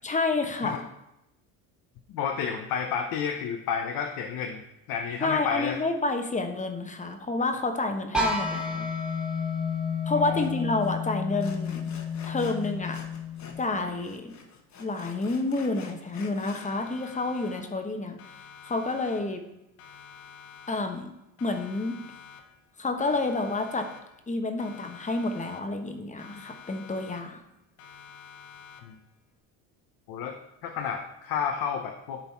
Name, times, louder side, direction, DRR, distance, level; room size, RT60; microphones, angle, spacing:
voice 1, 0.0-0.8 5.2-8.9 10.0-11.8 12.2-13.0 13.6-14.3 14.8-18.2 18.6-19.4 20.7-21.1 21.4-22.0 22.8-23.8 24.3-27.4, left 3 dB, 20° left, 5 dB, 1.1 m, -29 dB
voice 2, 2.1-5.8 10.2-10.6 28.8-28.9 30.1-30.4 30.6-32.2, left 7 dB, 65° left, 4 dB, 0.9 m, -31 dB
sound 1, 8.1-13.9, left 4 dB, ahead, 1.6 m, -31 dB
Sawing, 10.4-10.5 10.8-11.0 11.4-13.6 13.9-16.7, left 5 dB, 45° left, 1.4 m, -47 dB
Siren, 16.6-17.9 18.2-19.5 19.8-21.1 21.4-22.7 23.0-24.3 24.6-25.9 26.2-27.5 27.8-29.1, left 7 dB, 80° left, 1.4 m, -49 dB
11.0 x 3.9 x 4.5 m, 0.87 s
supercardioid pair, 95°, 38 cm